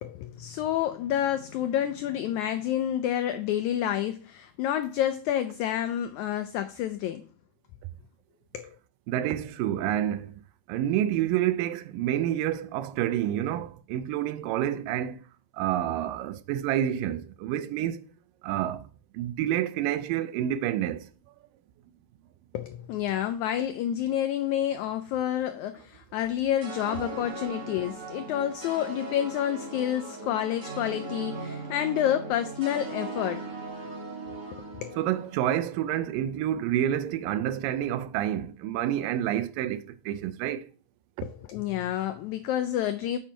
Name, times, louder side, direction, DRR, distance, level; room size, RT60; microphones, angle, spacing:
voice 1, 0.0-7.2 8.5-8.7 22.5-33.5 34.8-35.0 41.2-43.2, left 11 dB, 90° left, 1.6 m, -29 dB
voice 2, 9.1-10.4 10.7-15.2 15.5-18.0 18.4-18.9 19.1-21.1 35.0-40.7, right 11 dB, 85° right, 2.2 m, -28 dB
sound 1, 26.6-35.9, right 3 dB, 55° right, 0.8 m, -39 dB
7.3 x 4.4 x 4.4 m
omnidirectional pair, 3.9 m